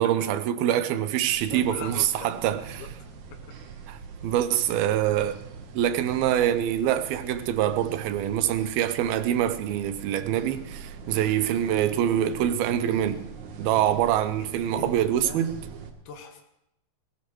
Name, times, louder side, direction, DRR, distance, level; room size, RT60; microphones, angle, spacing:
voice 1, 0.0-2.8 3.9-5.4 5.7-13.3 13.6-15.6, right 11 dB, 85° right, 2.6 m, -25 dB
sound 1, 1.3-15.9, right 6 dB, 65° right, 2.2 m, -42 dB
voice 2, 1.5-2.9 4.2-4.3 11.1-11.4 14.4-15.5 16.1-16.4, left 6 dB, 85° left, 3.5 m, -42 dB
20.0 x 17.5 x 3.1 m
omnidirectional pair, 4.3 m